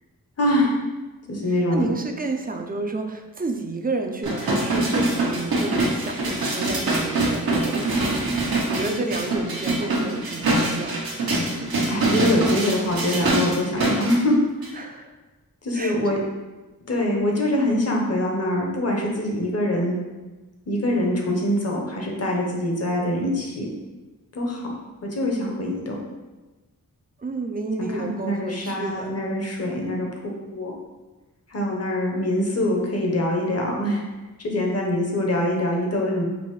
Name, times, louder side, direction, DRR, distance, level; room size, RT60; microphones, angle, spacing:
voice 1, 0.4-0.7 1.3-1.9 11.9-14.4 14.7-14.8 15.6-16.2 16.9-20.0 20.7-23.7 24.3-24.7 25.0-26.0 27.8-30.7 31.5-34.0 34.4-36.2, left 1 dB, 45° left, 0 dB, 0.9 m, -24 dB
voice 2, 1.5-11.0 14.8-15.1 15.7-16.0 27.2-29.1, right 3 dB, 25° right, 4 dB, 0.4 m, -30 dB
Sounds For Earthquakes - Pans Metal, 4.2-14.2 14.6-14.7, right 2 dB, 85° right, 0.9 m, -24 dB
5.4 x 2.6 x 3.1 m, 1.2 s
wide cardioid pair, 65°, 35 cm